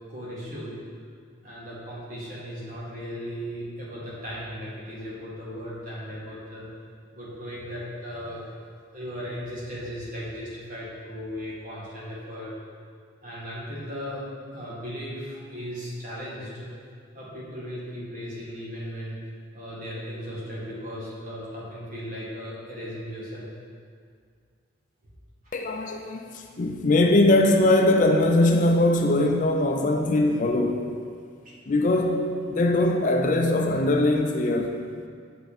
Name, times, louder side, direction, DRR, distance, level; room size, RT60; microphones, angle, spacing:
voice 1, 0.1-0.8 1.4-6.7 7.1-8.6 8.9-12.5 13.2-14.2 14.5-16.7 17.1-19.2 19.5-23.5 31.4-31.5, equal, 45° right, -7 dB, 2.0 m, -36 dB
voice 2, 25.5-30.9 31.7-34.8, left 2 dB, 40° left, 4 dB, 0.4 m, -21 dB
7.8 x 5.7 x 4.2 m, 2.1 s
head